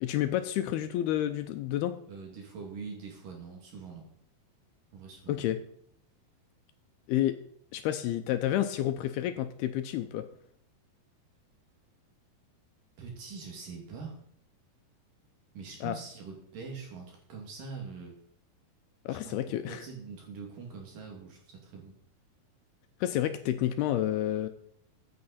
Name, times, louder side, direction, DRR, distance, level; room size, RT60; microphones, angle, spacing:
voice 1, 0.0-1.9 5.3-5.6 7.1-7.4 7.7-10.2 15.8-16.0 19.1-19.8 23.0-24.5, left 12 dB, 80° left, 9 dB, 2.4 m, -30 dB
voice 2, 2.1-4.1 4.9-5.4 13.0-14.2 15.5-18.1 19.1-21.9, right 5 dB, 55° right, 0 dB, 3.8 m, -44 dB
14.5 x 8.7 x 4.2 m, 0.66 s
omnidirectional pair, 4.8 m